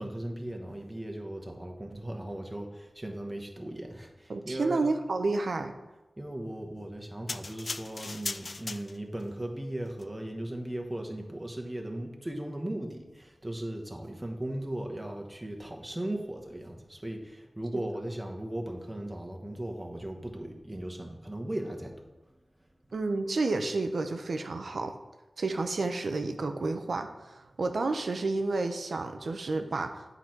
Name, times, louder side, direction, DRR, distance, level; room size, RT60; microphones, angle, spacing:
voice 1, 0.0-4.9 6.2-22.0, right 1 dB, 20° right, 2 dB, 1.2 m, -37 dB
voice 2, 4.3-5.8 17.7-17.8 22.9-24.9 25.4-30.1, right 3 dB, 80° right, 7 dB, 0.6 m, -30 dB
sound 1, 7.3-9.2 9.9-10.0, left 3 dB, 55° left, 0.3 m, -38 dB
8.4 x 4.0 x 4.5 m, 1.1 s
cardioid pair, 45°, 0 cm